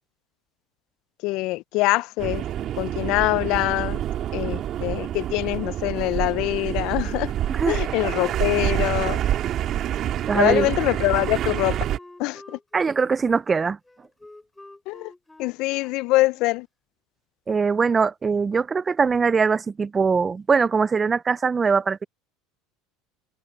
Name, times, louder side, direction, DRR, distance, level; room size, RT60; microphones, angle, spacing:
voice 1, 1.2-2.4 2.8-4.0 4.3-7.3 7.7-9.2 10.3-11.8 12.2-12.6 14.9-15.1 15.4-16.7, left 21 dB, 65° left, 0.5 m, -24 dB
sound 1, 2.2-12.0, right 11 dB, 50° right, 2.4 m, -27 dB
voice 2, 7.5-7.8 10.3-10.7 12.7-13.8 17.5-22.0, right 5 dB, 25° right, 0.4 m, -22 dB
Wind instrument woodwind instrument, 11.2-16.7, left 2 dB, 10° left, 5.2 m, -49 dB
supercardioid pair, 95°, 0 cm